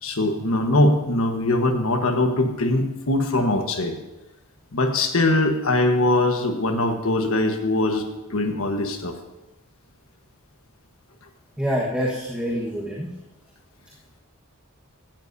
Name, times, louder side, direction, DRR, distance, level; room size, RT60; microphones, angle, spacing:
voice 1, 0.0-4.0 4.7-9.2, left 2 dB, 70° left, 5 dB, 1.4 m, -22 dB
voice 2, 11.6-13.1, equal, 5° right, -6 dB, 1.5 m, -26 dB
16.5 x 12.5 x 2.8 m, 1.1 s
head